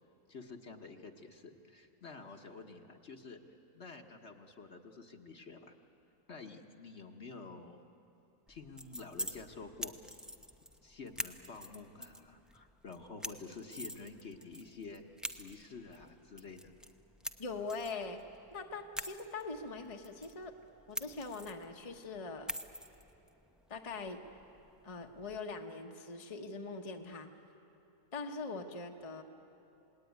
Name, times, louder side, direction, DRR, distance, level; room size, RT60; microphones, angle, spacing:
voice 1, 0.3-3.4 3.7-5.7 6.3-7.8 8.5-10.0 10.8-15.0 15.3-16.7, left 4 dB, 45° left, 4 dB, 1.4 m, -49 dB
sound 1, 8.5-25.4, equal, ahead, 0.4 m, -47 dB
voice 2, 17.4-18.2 18.5-20.5 20.9-22.5 23.7-24.2 24.8-27.3 28.1-29.2, left 3 dB, 25° left, 3 dB, 1.1 m, -42 dB
28.0 x 19.5 x 9.4 m, 2.9 s
omnidirectional pair, 1.7 m